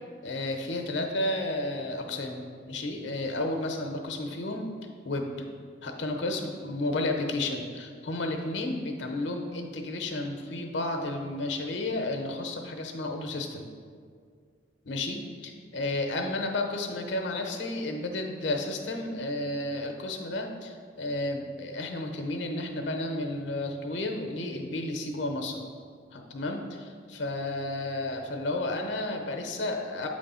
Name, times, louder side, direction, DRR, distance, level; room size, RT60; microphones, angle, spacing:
voice 1, 0.2-4.7 5.0-5.3 5.8-13.7 14.8-25.6 26.1-30.1, left 2 dB, 70° left, 4 dB, 0.8 m, -32 dB
8.0 x 3.2 x 5.5 m, 2.1 s
head